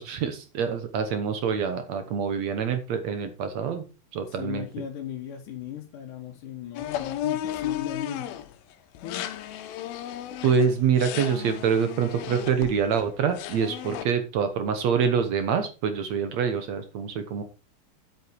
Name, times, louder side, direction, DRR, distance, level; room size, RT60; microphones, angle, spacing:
voice 1, 0.0-3.9 4.1-4.7 10.4-17.4, right 6 dB, 65° right, 8 dB, 1.8 m, -26 dB
voice 2, 4.3-8.3 9.0-9.5, left 10 dB, 65° left, 1 dB, 2.5 m, -37 dB
sound 1, 6.8-8.5 9.0-13.1 13.3-14.1, left 12 dB, 85° left, 2.7 m, -34 dB
8.2 x 7.8 x 4.7 m, 0.31 s
omnidirectional pair, 4.3 m